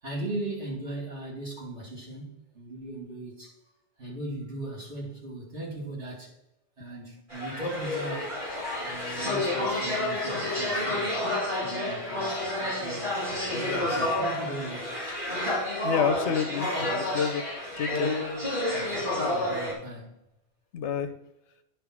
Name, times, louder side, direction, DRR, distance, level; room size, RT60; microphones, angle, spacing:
voice 1, 0.0-3.6 4.0-6.3 6.8-8.3 8.8-11.2 11.6-13.1 13.5-15.0 18.7-19.0 19.3-20.1, right 2 dB, 80° right, 2.9 m, -38 dB
sound 1, 7.3-19.7, left 1 dB, 45° right, 2.8 m, -30 dB
voice 2, 15.8-17.5 17.8-18.1 20.7-21.1, left 7 dB, 85° left, 1.0 m, -28 dB
10.0 x 3.5 x 6.0 m
omnidirectional pair, 1.2 m